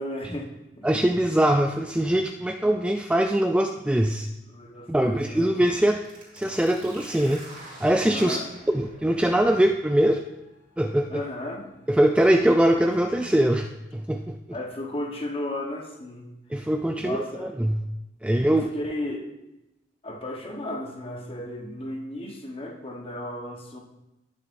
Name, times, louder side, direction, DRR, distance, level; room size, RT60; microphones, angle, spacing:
voice 1, 0.0-0.9 4.5-5.5 8.1-8.5 11.1-11.7 14.5-16.7 17.0-17.5 18.4-19.3 20.0-23.8, left 1 dB, 30° left, 1 dB, 1.1 m, -34 dB
voice 2, 0.8-4.3 4.9-6.0 6.3-8.4 8.7-10.2 10.8-11.2 11.9-14.4 16.5-17.8 18.2-18.7, right 1 dB, 5° right, 4 dB, 0.3 m, -22 dB
sound 1, 5.6-13.1, right 1 dB, 40° right, 3.3 m, -48 dB
17.5 x 7.0 x 2.6 m, 0.95 s
head